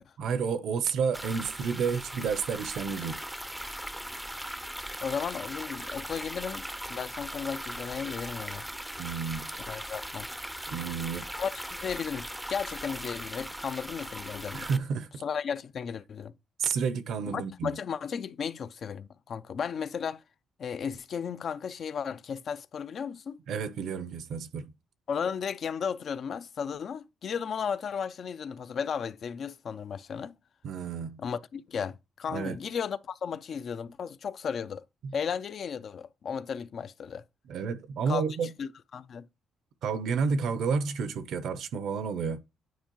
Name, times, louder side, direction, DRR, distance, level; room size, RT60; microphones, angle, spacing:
voice 1, 0.2-3.2 9.0-9.5 10.7-11.3 14.5-15.2 16.6-17.7 23.5-24.7 30.6-31.2 32.3-32.6 35.0-35.1 37.5-38.5 39.8-42.4, right 6 dB, 75° right, 0.6 m, -30 dB
sound 1, 1.1-14.8, equal, 5° right, 0.4 m, -39 dB
voice 2, 5.0-8.7 9.7-10.3 11.4-14.7 15.2-16.3 17.3-20.2 20.6-23.4 25.1-30.3 31.2-34.8 35.1-37.2 38.1-38.2 38.6-39.3, left 7 dB, 55° left, 0.4 m, -35 dB
9.3 x 4.4 x 3.0 m
cardioid pair, 90°, 0 cm